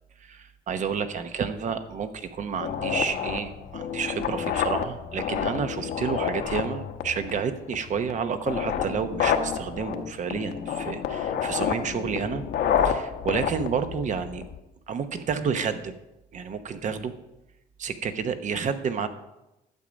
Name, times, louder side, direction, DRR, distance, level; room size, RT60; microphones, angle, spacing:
voice 1, 0.2-12.4 12.8-14.5 14.9-15.9 16.3-17.1 17.8-19.1, right 6 dB, 45° right, 10 dB, 1.0 m, -30 dB
sound 1, 2.6-14.6, left 8 dB, 70° left, 1.1 m, -29 dB
12.0 x 7.6 x 5.2 m, 0.94 s
cardioid pair, 110°, 17 cm